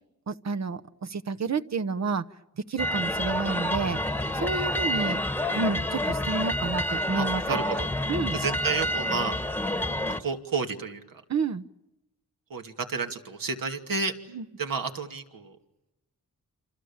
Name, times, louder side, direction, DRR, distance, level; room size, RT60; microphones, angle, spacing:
voice 1, 0.3-2.2 2.7-5.2 5.5-7.4 8.1-8.4 11.3-11.6 14.3-14.4, right 4 dB, 50° right, 9 dB, 0.9 m, -30 dB
sound 1, 2.8-10.2, left 1 dB, 5° left, 1.3 m, -28 dB
voice 2, 7.2-7.9 8.3-9.3 10.1-11.2 12.5-14.2 14.6-15.6, right 4 dB, 70° right, 5 dB, 2.6 m, -31 dB
28.0 x 27.5 x 7.3 m, 0.97 s
wide cardioid pair, 105°, 35 cm